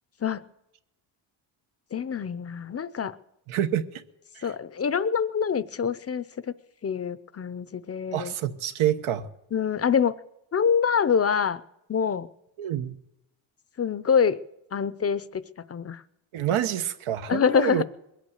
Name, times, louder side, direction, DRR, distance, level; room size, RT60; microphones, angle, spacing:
voice 1, 1.9-3.2 4.4-6.5 6.8-8.3 9.5-10.1 10.5-11.6 11.9-12.3 13.8-14.4 14.7-15.4 15.7-16.0 17.3-17.8, left 7 dB, 30° left, 0.6 m, -25 dB
voice 2, 3.5-4.0 4.3-4.5 8.1-9.3 12.6-13.0 16.3-17.8, right 10 dB, 80° right, 1.2 m, -27 dB
21.0 x 8.4 x 8.0 m
cardioid pair, 125°, 48 cm